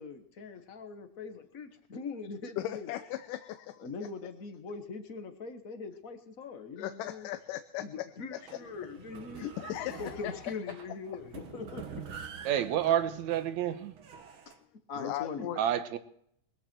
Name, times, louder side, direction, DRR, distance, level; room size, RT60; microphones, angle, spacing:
voice 1, 0.0-2.9 3.8-7.3 7.8-9.5 10.0-12.3 14.4-14.6 14.9-15.5, left 4 dB, 60° left, 0.8 m, -42 dB
voice 2, 2.6-3.8 6.8-7.8 9.4-10.3 12.6-12.7 15.0-15.6, left 13 dB, 85° left, 2.4 m, -37 dB
sound 1, 8.3-14.6, right 7 dB, 50° right, 1.8 m, -47 dB
voice 3, 12.5-13.9 15.6-16.0, right 10 dB, 70° right, 2.2 m, -29 dB
21.5 x 14.5 x 4.5 m
omnidirectional pair, 3.7 m